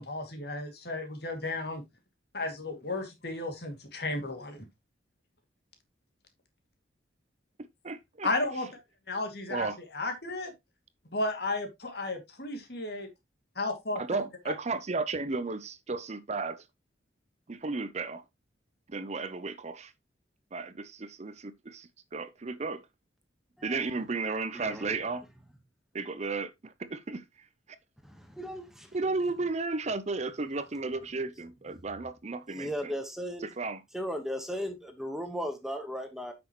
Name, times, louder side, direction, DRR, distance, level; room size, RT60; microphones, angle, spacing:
voice 1, 0.0-1.8 2.3-4.6 8.2-8.8 9.1-9.7 9.9-10.5 11.1-13.1 13.6-14.0, left 2 dB, 60° left, 2.4 m, -33 dB
voice 2, 7.8-8.3 9.5-9.8 14.0-16.6 17.5-18.2 18.9-19.9 20.5-22.8 23.6-25.3 25.9-27.2 28.9-32.9 33.4-33.8, right 3 dB, 35° right, 0.6 m, -34 dB
voice 3, 24.5-24.9 28.0-28.9 31.8-31.9 32.5-33.5 33.9-36.3, equal, ahead, 1.3 m, -36 dB
9.4 x 6.1 x 3.0 m
head